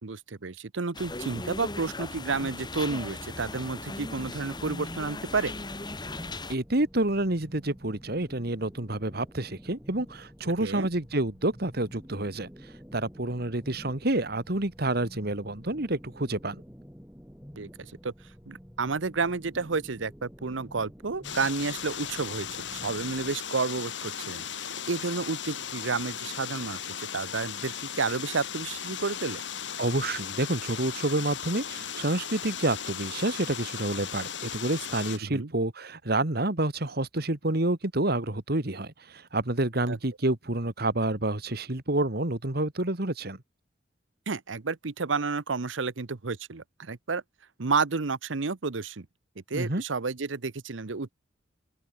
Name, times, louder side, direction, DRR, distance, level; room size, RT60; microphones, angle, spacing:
voice 1, 0.0-5.5 10.6-10.9 17.6-18.1 18.5-24.4 24.9-26.8 27.1-29.4 35.2-35.5 39.9-40.0 44.3-47.2 47.6-49.1 49.5-51.1, right 4 dB, 85° right, 0.9 m, -31 dB
sound 1, 0.9-6.5, left 2 dB, 25° left, 6.2 m, -38 dB
sound 2, 3.8-23.4, equal, 5° right, 5.5 m, -50 dB
voice 2, 6.5-12.5 12.9-16.6 29.8-43.4 49.5-49.8, right 2 dB, 55° right, 2.1 m, -28 dB
sound 3, 21.2-35.2, left 8 dB, 70° left, 2.8 m, -37 dB
open air
head